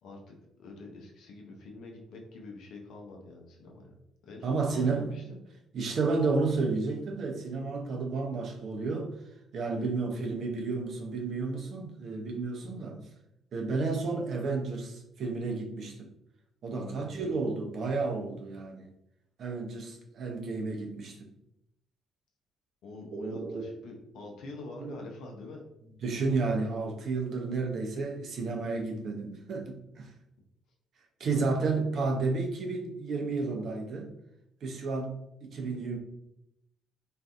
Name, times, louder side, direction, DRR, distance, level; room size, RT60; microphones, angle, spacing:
voice 1, 0.0-3.9 4.2-5.4 9.7-10.0 12.6-12.8 16.7-17.3 22.8-25.7 31.2-31.9, left 2 dB, 65° left, 1 dB, 0.6 m, -45 dB
voice 2, 4.4-5.2 5.7-9.1 9.5-13.0 13.5-16.1 16.6-18.9 19.4-21.3 23.1-23.7 24.8-24.9 26.0-30.1 31.2-34.1 34.6-36.0, right 3 dB, 55° right, 1 dB, 0.5 m, -31 dB
2.5 x 2.3 x 2.4 m, 0.81 s
hypercardioid pair, 45°, 0 cm